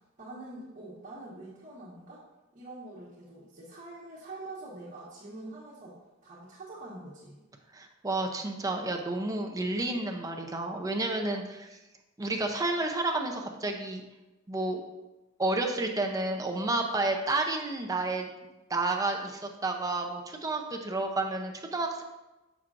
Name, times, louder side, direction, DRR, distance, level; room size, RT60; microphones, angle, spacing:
voice 1, 0.2-2.2 2.5-6.0 6.2-7.4, right 2 dB, 40° right, -9 dB, 1.4 m, -45 dB
voice 2, 7.7-11.8 12.2-14.0 14.5-14.8 15.4-18.3 18.7-22.0, right 2 dB, 20° right, 3 dB, 0.6 m, -30 dB
6.9 x 6.0 x 2.5 m, 1.1 s
head